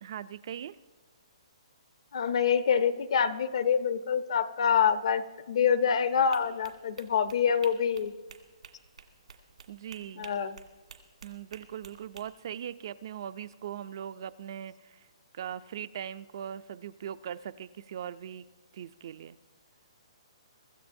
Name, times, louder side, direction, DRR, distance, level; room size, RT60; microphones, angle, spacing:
voice 1, 0.0-0.8 9.7-10.3 11.2-15.1 15.3-18.5 18.7-19.4, right 9 dB, 40° right, 14 dB, 0.3 m, -40 dB
voice 2, 2.1-5.2 5.5-8.1 10.2-10.6, left 7 dB, 55° left, 12 dB, 0.7 m, -26 dB
sound 1, 6.3-12.2, right 6 dB, 90° right, 1.9 m, -51 dB
24.0 x 13.5 x 2.6 m, 1.3 s
hypercardioid pair, 170°, 3 cm